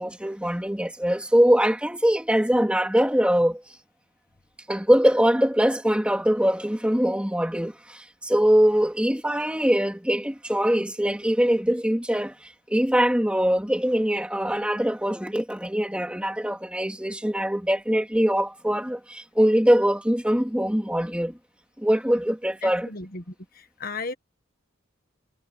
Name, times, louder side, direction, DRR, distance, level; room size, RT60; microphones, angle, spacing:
voice 1, 0.0-3.6 4.7-21.4 21.8-22.9, equal, 5° right, 2.7 m, -22 dB
voice 2, 22.6-24.1, left 3 dB, 45° left, 1.4 m, -35 dB
head